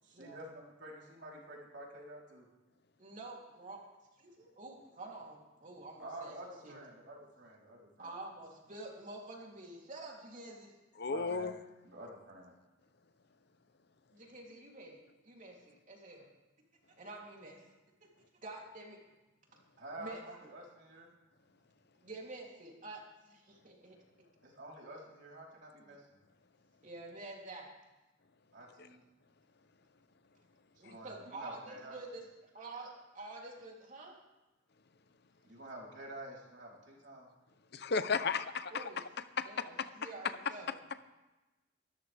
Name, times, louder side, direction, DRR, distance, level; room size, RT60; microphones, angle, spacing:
voice 1, 0.0-2.5 6.0-8.2 11.1-11.5 11.8-12.6 19.8-21.1 24.4-26.2 28.5-29.0 30.7-32.0 35.4-37.3, right 1 dB, 60° right, -3 dB, 4.1 m, -49 dB
voice 2, 3.0-3.8 4.2-6.4 6.6-6.8 8.0-10.7 14.1-16.3 17.0-17.7 18.4-19.0 20.0-20.2 22.0-24.0 26.8-27.7 30.8-32.2 32.5-34.2 38.7-39.0 39.4-40.7, right 2 dB, 40° right, -2 dB, 3.3 m, -48 dB
voice 3, 11.0-11.5 37.7-38.9 39.4-39.6, left 5 dB, 55° left, 12 dB, 0.8 m, -33 dB
23.0 x 13.5 x 3.5 m, 1.1 s
head